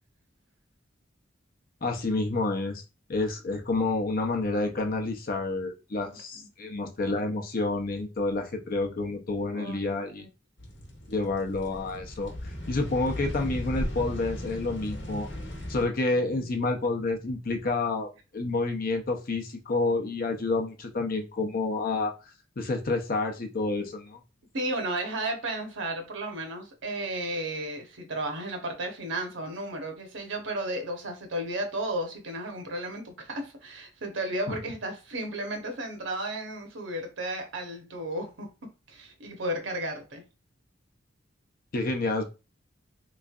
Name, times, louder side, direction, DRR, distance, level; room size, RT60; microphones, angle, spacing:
voice 1, 1.8-2.8 3.1-10.2 11.1-15.3 15.7-22.1 22.6-24.2 34.5-34.6 41.7-42.2, left 3 dB, 50° left, 0.6 m, -29 dB
voice 2, 9.5-10.3 24.5-38.5 38.9-40.2, right 1 dB, 75° right, 0.9 m, -34 dB
sound 1, 10.6-15.9, left 1 dB, 65° left, 1.0 m, -36 dB
3.6 x 3.1 x 2.4 m
head